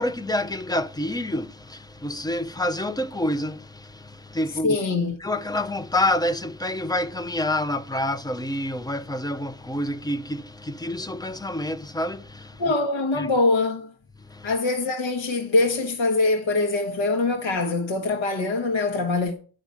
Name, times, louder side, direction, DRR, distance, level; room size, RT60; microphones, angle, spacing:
voice 1, 0.0-4.8 5.2-12.7 13.2-13.3 14.2-14.5, left 1 dB, 10° left, 0.5 m, -28 dB
voice 2, 4.6-5.2 12.6-13.9 14.4-19.3, left 3 dB, 75° left, 1.8 m, -23 dB
9.2 x 6.3 x 8.4 m
wide cardioid pair, 160°, 47 cm